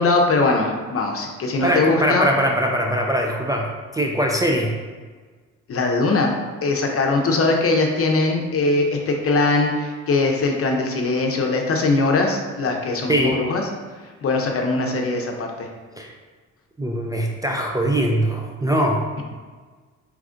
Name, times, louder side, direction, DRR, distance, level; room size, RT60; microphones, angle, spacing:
voice 1, 0.0-2.3 5.7-6.3 6.6-13.6 14.2-15.7, left 3 dB, 50° left, 2 dB, 0.7 m, -21 dB
voice 2, 1.6-4.7 6.9-7.0 13.1-13.4 16.0-16.1 16.8-19.1, right 1 dB, 10° right, 0 dB, 0.4 m, -22 dB
4.8 x 3.2 x 2.5 m, 1.4 s
cardioid pair, 90°, 30 cm